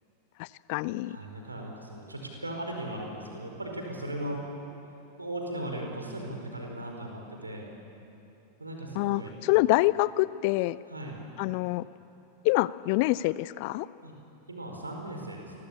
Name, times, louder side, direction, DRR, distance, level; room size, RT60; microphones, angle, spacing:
voice 1, 0.4-1.2 8.9-10.8 11.4-11.8 12.4-13.9, left 19 dB, 45° left, 19 dB, 0.6 m, -26 dB
voice 2, 1.1-4.4 5.2-7.7 8.6-9.3 10.9-11.2 14.0-14.1 14.5-15.5, right 1 dB, 80° right, 1 dB, 4.8 m, -37 dB
29.0 x 22.5 x 8.4 m, 2.9 s
figure-of-eight pair, 90°, 0 cm